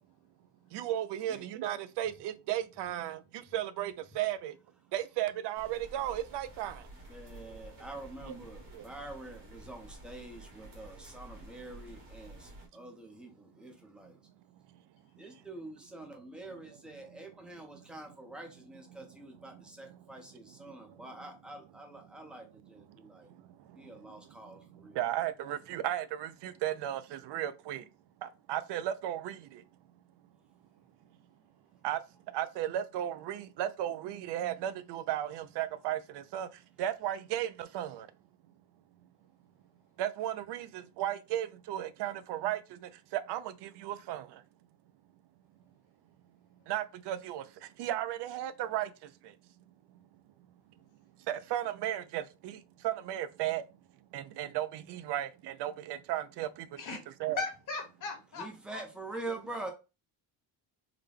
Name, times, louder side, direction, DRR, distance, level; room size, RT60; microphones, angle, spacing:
voice 1, 0.7-4.6 4.9-6.9 7.5-7.8 8.3-8.4 8.7-8.9 17.7-17.8 19.5-19.6 20.9-21.0 22.9-27.9 28.2-29.6 31.8-32.0 32.3-38.1 40.0-44.4 46.7-49.4 51.3-53.6 54.1-56.8 57.2-57.4, right 12 dB, 75° right, 0.5 m, -35 dB
sound 1, 5.5-12.7, right 2 dB, 50° right, 1.4 m, -51 dB
voice 2, 7.1-14.2 15.2-23.3 23.7-25.0 58.4-59.7, right 2 dB, ahead, 0.6 m, -46 dB
voice 3, 57.4-58.8, left 4 dB, 50° left, 1.2 m, -38 dB
3.9 x 2.2 x 3.3 m
cardioid pair, 160°, 42 cm